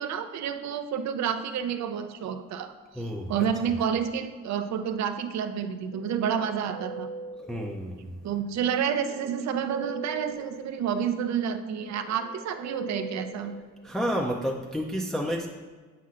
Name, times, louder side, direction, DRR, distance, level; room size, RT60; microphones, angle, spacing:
voice 1, 0.0-2.7 3.3-7.1 8.2-13.6, right 8 dB, 65° right, 9 dB, 0.6 m, -29 dB
voice 2, 2.9-3.4 7.5-8.2 13.8-15.5, equal, ahead, -1 dB, 0.5 m, -30 dB
Guitar, 5.6-8.1 8.8-14.3, right 3 dB, 40° left, 0.8 m, -42 dB
8.1 x 5.7 x 2.5 m, 1.4 s
cardioid pair, 90°, 30 cm